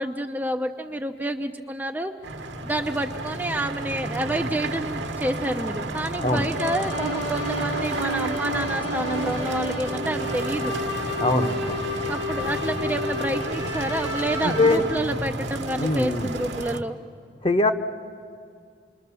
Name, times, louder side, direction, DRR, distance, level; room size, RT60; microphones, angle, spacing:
voice 1, 0.0-2.1 2.6-10.8 12.1-17.0, right 1 dB, 10° right, 4 dB, 0.5 m, -29 dB
sound 1, 2.2-16.8, right 2 dB, 65° right, 1.2 m, -32 dB
sound 2, 6.5-14.8, left 1 dB, 90° left, 7.3 m, -31 dB
voice 2, 11.2-11.8 14.4-14.8 15.8-16.3 17.4-17.7, left 2 dB, 30° left, 8 dB, 0.9 m, -22 dB
28.0 x 21.5 x 6.9 m, 2.2 s
head